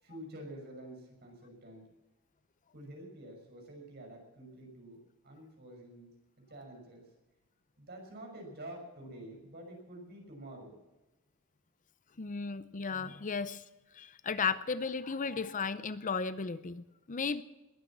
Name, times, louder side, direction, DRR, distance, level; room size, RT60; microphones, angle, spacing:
voice 1, 0.0-1.8 2.7-5.0 5.2-6.1 6.5-7.0 7.8-10.8, right 1 dB, 50° right, 1 dB, 6.0 m, -48 dB
voice 2, 12.2-13.6 13.9-17.4, left 5 dB, 40° left, 14 dB, 0.6 m, -35 dB
21.0 x 9.4 x 7.3 m, 1.1 s
head